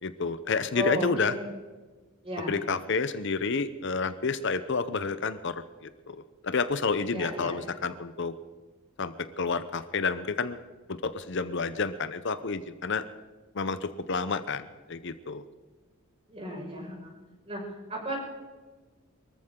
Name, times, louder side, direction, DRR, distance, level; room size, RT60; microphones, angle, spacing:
voice 1, 0.0-1.3 2.5-5.5 5.8-8.3 9.0-10.6 10.9-13.0 13.5-15.4, left 4 dB, 55° left, 12 dB, 0.7 m, -30 dB
voice 2, 0.7-1.5 2.2-2.6 7.1-7.7 16.3-17.1 17.5-17.6 17.9-18.2, equal, 25° right, -1 dB, 5.5 m, -34 dB
23.5 x 14.5 x 3.8 m, 1.3 s
head